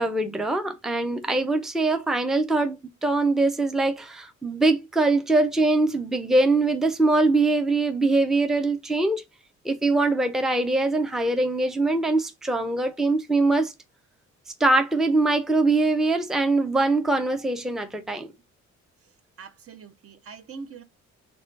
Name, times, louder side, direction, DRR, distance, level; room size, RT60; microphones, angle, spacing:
voice 1, 0.0-9.2 9.6-13.7 14.6-18.3, right 2 dB, ahead, 0.5 m, -23 dB
voice 2, 19.4-20.8, right 5 dB, 50° right, 0.7 m, -42 dB
3.1 x 2.3 x 3.9 m
cardioid pair, 90°, 30 cm